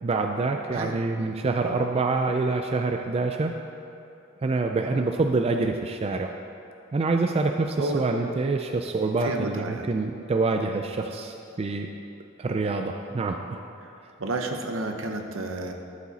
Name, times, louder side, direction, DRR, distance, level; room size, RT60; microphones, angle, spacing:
voice 1, 0.0-3.5 4.4-6.3 6.9-11.9 12.4-13.6, right 3 dB, 30° right, 4 dB, 0.3 m, -26 dB
voice 2, 0.7-1.0 7.8-8.0 9.2-9.8 13.8-13.9 14.2-15.7, right 2 dB, 70° right, 4 dB, 0.9 m, -31 dB
12.5 x 7.3 x 4.1 m, 2.7 s
head